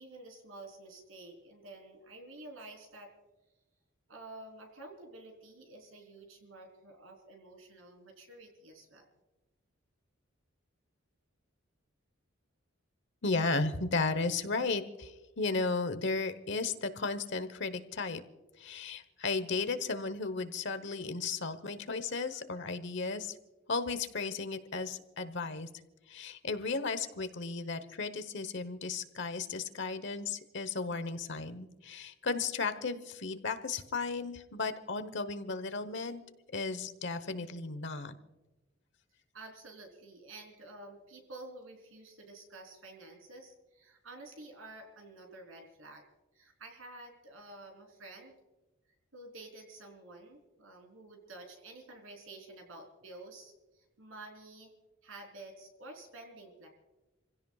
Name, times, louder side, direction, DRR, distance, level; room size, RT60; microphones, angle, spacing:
voice 1, 0.0-3.1 4.1-9.1 39.3-46.0 46.3-48.4 49.1-54.7 55.0-56.7, right 2 dB, 85° right, 3 dB, 3.8 m, -50 dB
voice 2, 13.2-18.2 18.6-23.4 23.7-25.7 26.1-36.2 36.5-38.1, left 4 dB, 65° left, 11 dB, 1.1 m, -34 dB
29.0 x 16.5 x 2.4 m, 1.1 s
head